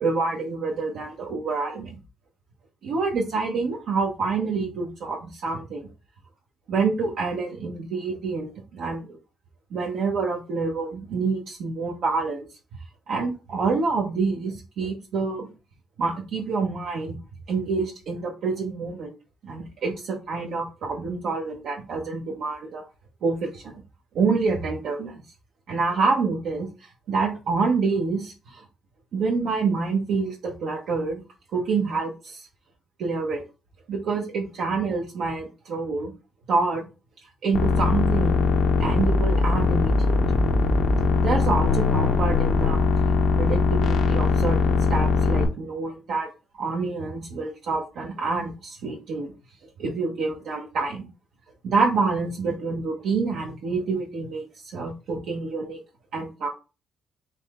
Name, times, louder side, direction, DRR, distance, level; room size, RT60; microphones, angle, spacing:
voice 1, 0.0-2.0 2.8-5.9 6.7-9.2 9.7-12.5 13.1-15.5 16.0-17.2 17.5-19.1 19.4-22.8 23.2-23.8 24.1-25.2 25.7-28.6 29.1-31.2 31.5-32.5 33.0-33.4 33.9-36.1 36.5-36.8 37.4-38.4 38.8-40.2 41.2-42.8 43.4-46.3 46.6-49.3 49.8-51.1 51.6-54.4 54.7-55.8 56.1-56.5, right 4 dB, 75° right, -2 dB, 1.0 m, -27 dB
sound 1, 37.5-45.5, left 4 dB, 75° left, 0.9 m, -21 dB
4.1 x 3.2 x 3.6 m, 0.30 s
cardioid pair, 90°, 0 cm